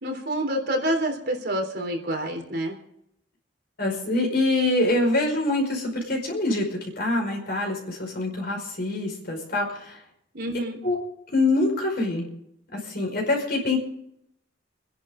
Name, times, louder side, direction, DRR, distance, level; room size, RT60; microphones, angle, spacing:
voice 1, 0.0-2.8 10.3-10.8, right 1 dB, 60° right, 2 dB, 3.4 m, -27 dB
voice 2, 3.8-6.7 7.0-10.0 10.8-11.0 11.3-12.3 12.7-13.8, left 2 dB, 55° left, 1 dB, 5.2 m, -25 dB
30.0 x 11.0 x 3.8 m, 0.76 s
head